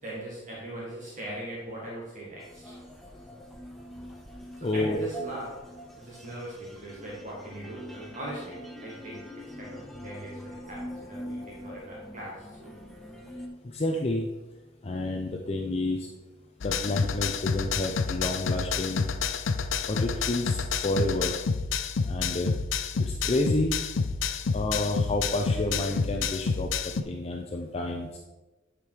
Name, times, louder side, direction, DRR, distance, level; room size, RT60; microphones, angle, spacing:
voice 1, 0.0-2.8 4.6-5.5 6.0-12.7, right 1 dB, 40° right, -5 dB, 1.8 m, -40 dB
sound 1, 2.4-13.5, equal, ahead, 1.0 m, -43 dB
voice 2, 4.6-5.0 13.7-14.3 14.8-16.0 16.6-19.1 19.9-21.3 22.1-22.5 23.0-23.8 24.5-26.7 27.1-28.2, left 2 dB, 30° left, 1 dB, 0.6 m, -29 dB
sound 2, 16.6-27.0, left 5 dB, 85° left, 0.5 m, -29 dB
10.0 x 5.2 x 4.6 m, 1.1 s
head